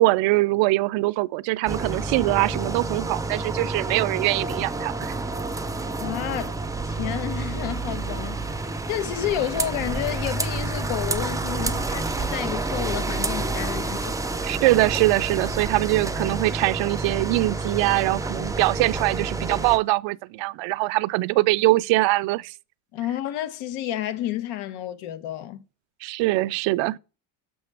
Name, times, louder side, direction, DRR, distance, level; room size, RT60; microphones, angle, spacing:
voice 1, 0.0-5.2 14.4-22.5 26.0-27.0, right 20 dB, 65° right, 0.5 m, -23 dB
sound 1, 1.7-19.8, right 3 dB, 5° right, 0.4 m, -29 dB
voice 2, 6.0-6.6 6.8-8.5 8.9-14.1 22.9-25.6, left 12 dB, 75° left, 1.1 m, -30 dB
6.9 x 5.5 x 3.3 m
cardioid pair, 100°, 49 cm